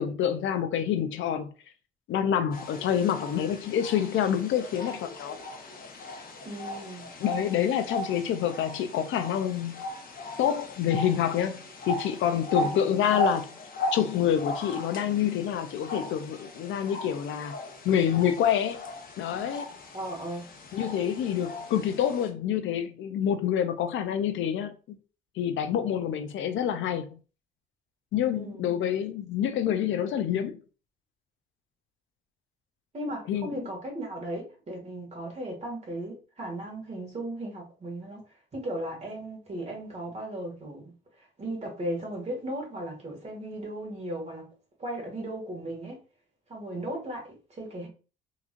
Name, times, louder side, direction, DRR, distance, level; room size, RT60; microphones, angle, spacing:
voice 1, 0.0-1.5 2.1-5.4 7.2-9.8 10.4-13.5 13.9-17.6 17.8-18.8 19.2-19.7 20.7-25.0 25.4-27.2 28.1-30.6 33.3-33.5, left 9 dB, 75° left, 0.5 m, -27 dB
sound 1, 2.5-22.3, left 1 dB, 45° left, 0.9 m, -37 dB
voice 2, 6.4-7.1 12.6-12.8 19.9-20.5 28.3-28.6 32.9-38.2 38.5-44.5 44.8-46.0 46.5-47.9, right 1 dB, 35° right, 1.8 m, -36 dB
3.8 x 3.0 x 2.5 m
cardioid pair, 90°, 20 cm